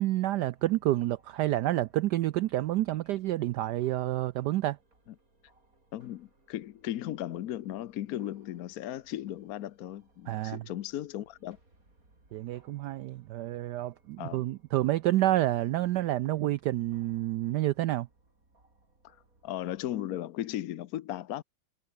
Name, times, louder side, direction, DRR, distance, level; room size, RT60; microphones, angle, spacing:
voice 1, 0.0-4.8 10.3-10.6 12.3-18.1, right 15 dB, 90° right, 0.9 m, -29 dB
sound 1, 0.5-20.1, right 2 dB, 40° right, 6.1 m, -66 dB
voice 2, 5.9-11.6 14.2-14.4 19.0-19.2 19.4-21.4, left 12 dB, 70° left, 0.8 m, -36 dB
omnidirectional pair, 2.4 m